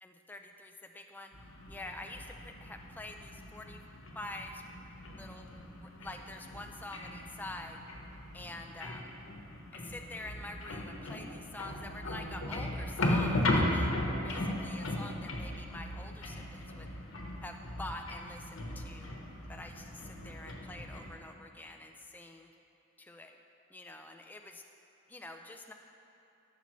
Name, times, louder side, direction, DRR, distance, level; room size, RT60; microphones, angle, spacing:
voice 1, 0.0-1.3 1.7-3.8 4.1-4.6 5.2-5.5 5.8-7.8 8.3-9.1 9.7-13.9 14.2-16.9 17.4-19.1 19.5-22.5 23.0-23.4 23.7-24.6 25.1-25.7, left 2 dB, 10° left, 4 dB, 0.3 m, -46 dB
sound 1, 1.3-21.1, left 1 dB, 70° left, 1.1 m, -37 dB
14.0 x 6.8 x 3.1 m, 2.8 s
head